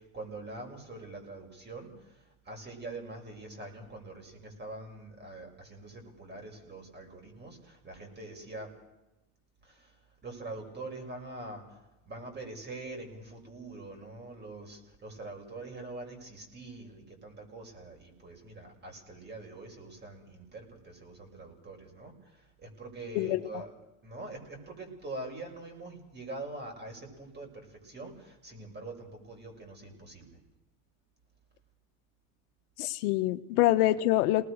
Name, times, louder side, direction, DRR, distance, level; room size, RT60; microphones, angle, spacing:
voice 1, 0.0-8.7 9.6-23.7 24.0-30.4, right 2 dB, 20° right, 2 dB, 6.6 m, -44 dB
voice 2, 32.8-34.5, left 16 dB, 80° left, 10 dB, 1.2 m, -25 dB
28.0 x 19.5 x 6.6 m, 1.0 s
supercardioid pair, 125°, 46 cm